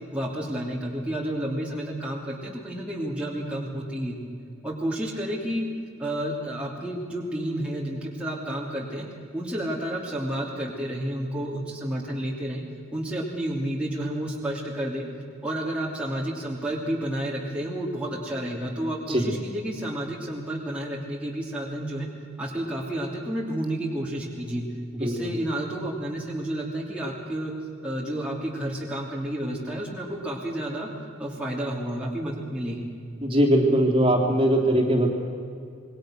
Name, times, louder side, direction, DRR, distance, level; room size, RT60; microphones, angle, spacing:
voice 1, 0.1-4.2 4.6-5.7 6.0-9.1 9.3-12.6 12.9-15.1 15.4-22.1 22.4-24.6 25.0-27.5 27.8-30.9 31.2-32.9, right 1 dB, 5° right, -4 dB, 2.9 m, -30 dB
voice 2, 33.2-35.1, right 1 dB, 25° right, 0 dB, 3.3 m, -20 dB
27.5 x 22.0 x 6.4 m, 2.4 s
head